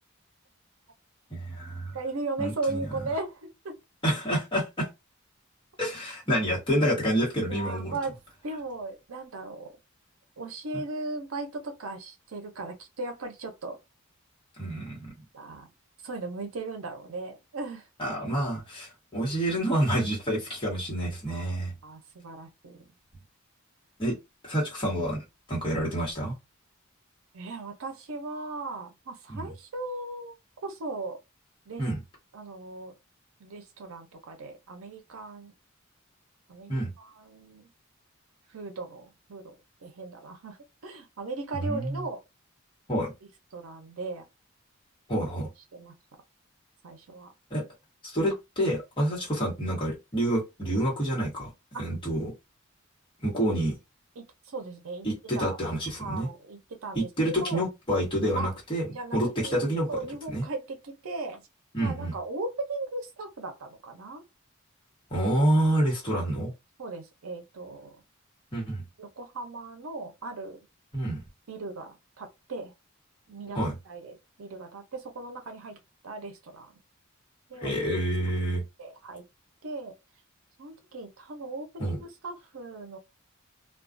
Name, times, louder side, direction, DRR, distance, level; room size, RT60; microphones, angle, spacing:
voice 1, 1.3-2.0 2.4-2.9 4.0-4.9 5.8-8.0 14.6-15.1 18.0-21.7 24.0-24.2 24.4-25.2 25.5-26.3 29.3-29.4 31.8-32.0 36.7-36.9 41.5-42.0 42.9-43.1 45.1-45.5 47.5-47.6 48.0-51.5 51.8-52.3 53.2-53.7 55.0-56.3 56.9-58.9 59.1-59.9 60.3-60.4 61.7-62.1 65.1-66.5 68.5-68.8 70.9-71.2 73.5-73.7 77.6-78.6 81.8-82.0, right 1 dB, 25° left, 1.1 m, -28 dB
voice 2, 1.9-3.8 7.5-8.2 8.4-9.7 10.4-13.8 15.3-15.7 16.0-17.9 21.3-22.8 27.3-30.3 30.6-31.2 31.7-31.8 32.3-32.9 33.4-35.5 36.5-37.7 38.5-39.6 39.8-40.6 40.8-42.2 43.5-44.2 45.2-45.3 45.7-45.9 46.8-47.3 51.7-51.9 54.2-55.1 55.3-55.6 56.0-57.6 58.3-58.5 58.9-61.5 61.8-64.2 65.2-65.3 66.1-66.2 66.8-68.0 69.0-70.6 71.5-72.7 73.3-76.7 77.5-77.7 78.8-79.2 79.6-79.9 80.6-83.0, right 3 dB, 80° right, 0.6 m, -37 dB
2.3 x 2.2 x 2.5 m
head